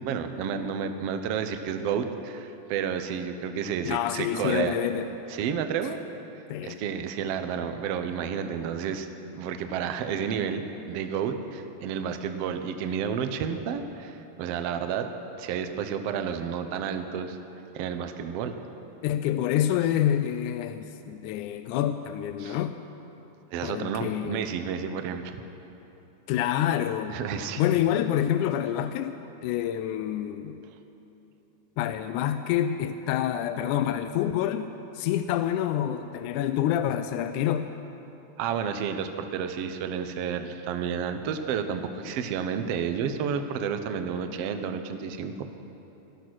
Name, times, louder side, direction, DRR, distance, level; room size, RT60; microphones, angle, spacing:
voice 1, 0.0-4.8 5.3-6.0 6.6-9.1 9.3-10.6 10.9-15.1 15.4-17.4 17.7-18.5 22.4-22.6 23.5-25.4 27.1-27.6 38.4-45.5, right 7 dB, 75° right, 7 dB, 1.5 m, -31 dB
voice 2, 3.9-5.1 6.5-6.8 19.0-22.7 23.6-24.5 26.3-27.2 27.6-29.2 29.4-30.6 31.8-37.7, left 11 dB, 80° left, 9 dB, 1.9 m, -27 dB
17.5 x 13.0 x 6.1 m, 3.0 s
omnidirectional pair, 3.7 m